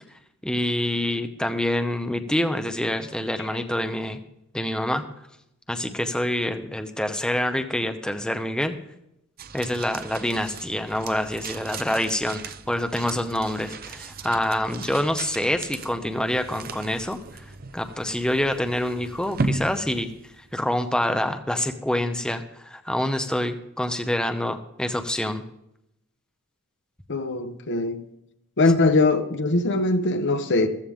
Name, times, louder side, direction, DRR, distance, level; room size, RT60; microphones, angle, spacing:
voice 1, 0.4-4.2 4.5-5.1 5.7-8.8 9.5-17.4 17.7-20.1 20.5-25.4, left 1 dB, 5° left, 0.7 m, -26 dB
sound 1, 9.4-20.7, right 3 dB, 45° right, 0.7 m, -36 dB
voice 2, 27.1-28.0 28.6-30.7, left 2 dB, 55° left, 1.0 m, -21 dB
14.5 x 14.0 x 3.6 m
head